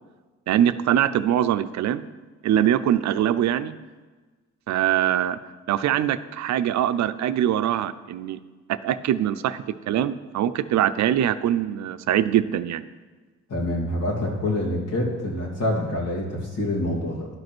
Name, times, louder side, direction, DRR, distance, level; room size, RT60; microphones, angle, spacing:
voice 1, 0.5-2.1 2.4-3.8 4.7-5.4 5.7-8.4 8.7-12.8, right 11 dB, 65° right, 12 dB, 0.5 m, -23 dB
voice 2, 13.5-17.3, left 1 dB, 80° left, -4 dB, 2.9 m, -26 dB
11.5 x 5.2 x 6.1 m, 1.3 s
cardioid pair, 90°, 30 cm